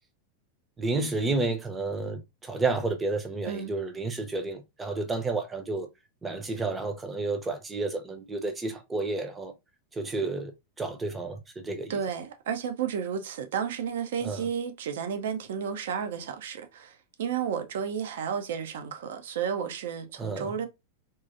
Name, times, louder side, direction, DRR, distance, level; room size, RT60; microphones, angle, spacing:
voice 1, 0.8-5.9 6.2-9.5 9.9-10.5 10.8-12.0 14.2-14.5 20.2-20.6, right 3 dB, 15° right, 0.8 m, -31 dB
voice 2, 11.9-16.9 17.2-20.7, right 7 dB, 60° right, 0.7 m, -32 dB
3.8 x 3.0 x 2.6 m
figure-of-eight pair, 90°, 0 cm